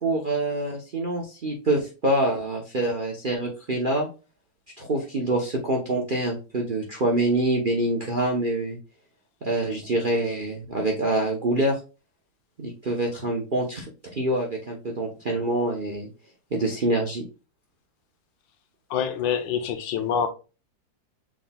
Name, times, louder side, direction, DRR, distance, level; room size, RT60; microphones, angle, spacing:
voice 1, 0.0-4.1 4.8-8.8 9.4-11.8 12.6-16.1 16.5-17.2, right 2 dB, 45° right, 0.7 m, -26 dB
voice 2, 18.9-20.3, left 8 dB, 80° left, 1.4 m, -26 dB
6.2 x 3.8 x 2.2 m
omnidirectional pair, 2.1 m